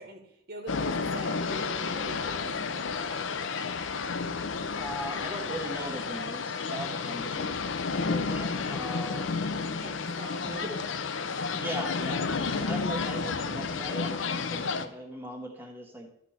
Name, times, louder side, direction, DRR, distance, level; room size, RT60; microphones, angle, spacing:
voice 1, 0.0-3.3 9.5-10.8, right 1 dB, 50° right, 4 dB, 1.6 m, -43 dB
sound 1, 0.7-14.9, left 4 dB, 75° left, 0.7 m, -31 dB
voice 2, 4.8-7.6 8.1-9.3 10.4-10.7 11.5-16.1, equal, 10° right, 0 dB, 1.2 m, -39 dB
13.0 x 6.2 x 4.3 m, 0.75 s
head